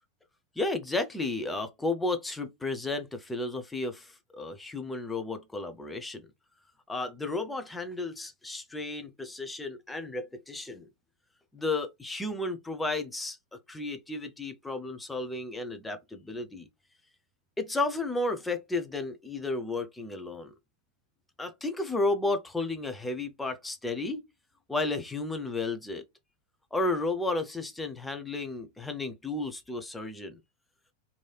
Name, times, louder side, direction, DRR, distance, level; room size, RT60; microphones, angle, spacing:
voice 1, 0.6-6.3 6.9-10.9 11.5-16.7 17.6-20.5 21.4-24.2 24.7-26.0 26.7-30.4, left 2 dB, 10° left, 0.5 m, -33 dB
3.1 x 2.7 x 2.3 m
figure-of-eight pair, 90°, 0 cm